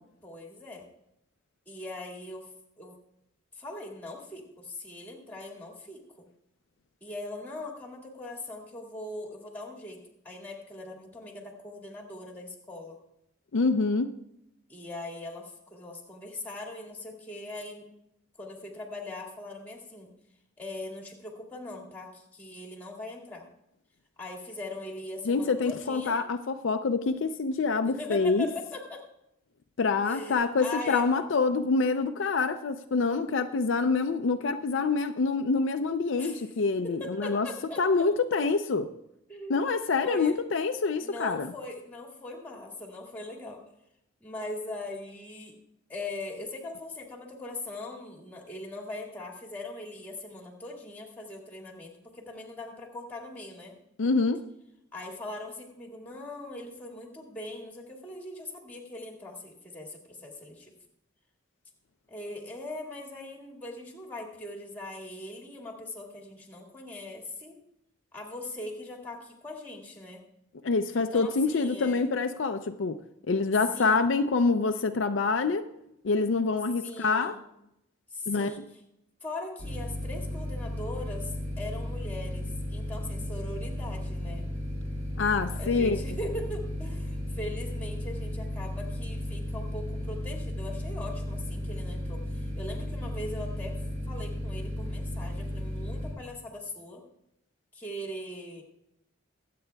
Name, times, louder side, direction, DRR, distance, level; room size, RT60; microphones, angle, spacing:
voice 1, 0.2-0.9 1.7-2.5 2.8-2.9 3.6-6.3 7.0-10.0 10.2-13.0 14.7-17.8 18.4-20.1 20.6-23.5 24.2-26.2 27.8-29.0 30.0-31.2 36.2-36.5 36.8-38.1 39.3-40.4 41.0-43.6 44.2-45.5 45.9-53.7 54.9-60.7 62.1-67.6 68.1-70.2 70.9-72.1 73.7-74.0 76.8-77.4 78.1-78.8 79.2-84.5 85.6-93.8 94.1-97.0 97.7-98.6, left 2 dB, 10° left, 0 dB, 1.9 m, -40 dB
voice 2, 13.5-14.1 25.3-28.5 29.8-37.5 37.8-38.9 39.5-41.5 54.0-54.4 70.6-73.0 73.3-75.6 76.0-77.4 78.3-78.5 85.2-86.0, left 4 dB, 65° left, 7 dB, 0.5 m, -26 dB
sound 1, 79.6-96.1, left 1 dB, 40° right, 4.3 m, -34 dB
22.0 x 8.4 x 2.3 m, 0.81 s
head